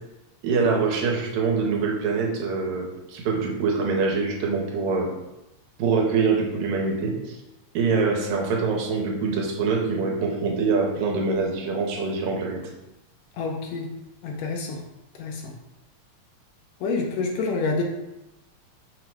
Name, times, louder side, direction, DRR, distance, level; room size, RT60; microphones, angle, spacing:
voice 1, 0.4-5.1 5.8-7.4 7.7-12.7, right 4 dB, 80° right, 0 dB, 2.0 m, -24 dB
voice 2, 13.4-13.9 14.2-14.8 15.2-15.5 16.8-17.8, left 4 dB, 80° left, 1 dB, 1.7 m, -27 dB
5.7 x 2.1 x 4.5 m, 0.95 s
omnidirectional pair, 3.4 m